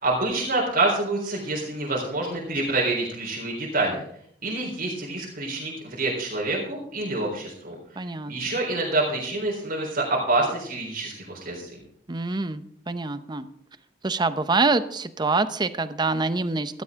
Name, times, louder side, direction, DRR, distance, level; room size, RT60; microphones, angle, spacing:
voice 1, 0.0-4.0 4.4-11.8, right 2 dB, 55° right, -2 dB, 4.0 m, -27 dB
voice 2, 8.0-8.3 12.1-13.5 14.0-16.8, right 3 dB, 25° right, 12 dB, 0.7 m, -25 dB
15.0 x 13.0 x 3.7 m, 0.66 s
head